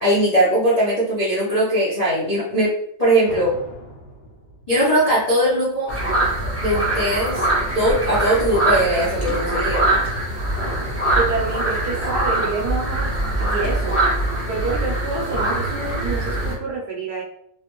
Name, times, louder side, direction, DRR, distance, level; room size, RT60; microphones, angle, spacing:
voice 1, 0.0-2.7 3.0-3.5 4.7-5.9 6.6-7.4 7.7-9.9, right 1 dB, 60° left, -9 dB, 0.4 m, -20 dB
sound 1, 3.3-6.3 10.6-11.6, left 1 dB, 75° left, 1.4 m, -39 dB
sound 2, 5.9-16.5, right 1 dB, 10° right, 0.8 m, -23 dB
voice 2, 11.1-13.1 13.4-14.0 14.5-17.2, right 4 dB, 70° right, -2 dB, 1.0 m, -27 dB
3.3 x 2.4 x 3.0 m, 0.71 s
omnidirectional pair, 2.1 m